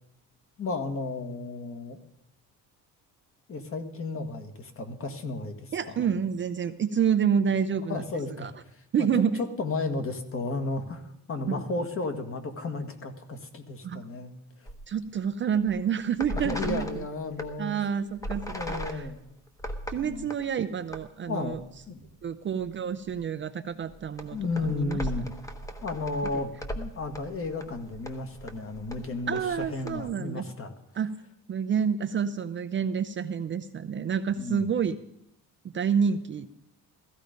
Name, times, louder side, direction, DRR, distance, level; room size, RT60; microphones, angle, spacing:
voice 1, 0.6-2.0 3.5-6.1 7.9-9.1 9.4-14.3 14.6-14.7 16.3-17.7 18.5-19.2 19.9-20.3 21.3-22.0 24.3-25.3 25.8-30.7 34.3-34.6, left 3 dB, 35° left, 7 dB, 1.7 m, -33 dB
voice 2, 5.7-8.0 8.4-8.5 8.9-9.4 11.5-11.6 13.8-14.0 14.9-16.9 17.6-19.1 19.9-21.6 22.2-25.0 29.3-30.5 30.9-31.1 31.5-35.0 35.7-36.5, right 7 dB, 35° right, 9 dB, 0.5 m, -28 dB
sound 1, 14.7-15.2 15.5-15.8 16.1-17.5 18.2-20.4 20.8-21.0 21.5-22.2 22.6-22.7 23.1-23.2 23.8-30.1, equal, 10° left, 1.1 m, -38 dB
15.5 x 15.0 x 5.2 m, 0.78 s
cardioid pair, 155°, 36 cm